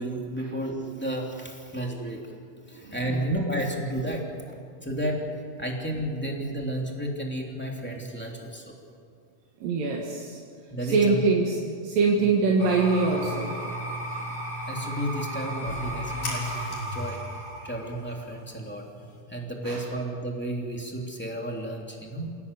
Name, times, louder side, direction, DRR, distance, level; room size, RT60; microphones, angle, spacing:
voice 1, 0.0-2.2 2.7-5.2 5.6-8.7 10.7-11.2 12.2-12.3 14.7-17.2 17.6-18.8 19.3-22.3, right 1 dB, 5° left, -1 dB, 2.7 m, -32 dB
voice 2, 2.8-3.3 9.6-10.4 10.8-13.5 19.6-19.8, right 4 dB, 85° right, -1 dB, 3.5 m, -24 dB
sound 1, 12.6-19.2, equal, 65° left, 7.7 m, -34 dB
28.0 x 17.0 x 8.3 m, 2.3 s
omnidirectional pair, 3.8 m